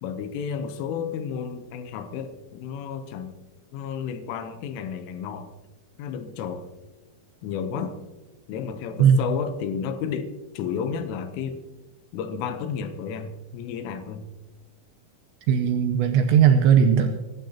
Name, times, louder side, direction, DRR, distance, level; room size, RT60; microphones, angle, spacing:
voice 1, 0.0-3.4 3.7-5.5 6.0-6.7 7.4-8.0 8.5-11.6 12.1-14.3 16.1-16.2, left 7 dB, 80° left, 9 dB, 3.4 m, -32 dB
voice 2, 15.5-17.1, right 7 dB, 80° right, 6 dB, 2.7 m, -18 dB
23.0 x 13.0 x 2.9 m, 1.1 s
omnidirectional pair, 5.8 m